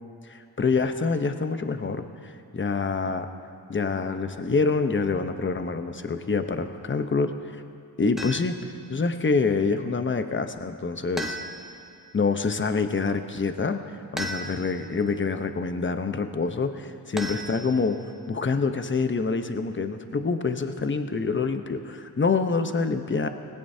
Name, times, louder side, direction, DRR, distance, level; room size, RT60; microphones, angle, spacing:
voice 1, 0.2-3.3 3.7-7.3 8.0-8.6 8.9-11.4 12.1-13.8 14.1-18.0 18.3-23.3, left 4 dB, 25° left, 8 dB, 1.0 m, -26 dB
sound 1, 8.2-8.7 11.2-11.9 14.2-14.9 17.2-18.0, equal, ahead, 1.4 m, -35 dB
19.5 x 17.0 x 2.8 m, 2.4 s
cardioid pair, 60°, 44 cm